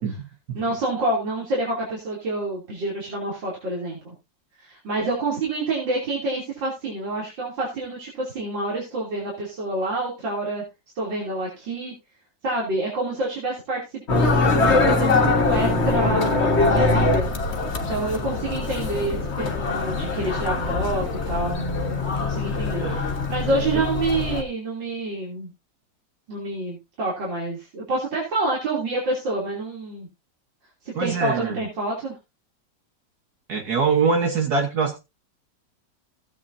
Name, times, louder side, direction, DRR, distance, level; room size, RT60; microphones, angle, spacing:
voice 1, 0.5-4.1 4.6-10.6 11.0-11.9 12.4-17.3 17.9-21.6 21.9-25.5 26.3-30.1 30.8-32.1, right 2 dB, 85° right, -4 dB, 3.8 m, -28 dB
sound 1, 14.1-24.4, left 3 dB, 40° left, 1.6 m, -23 dB
voice 2, 31.0-31.6 33.5-35.0, right 5 dB, 60° right, 3 dB, 1.7 m, -23 dB
16.5 x 8.6 x 2.7 m, 0.25 s
omnidirectional pair, 1.9 m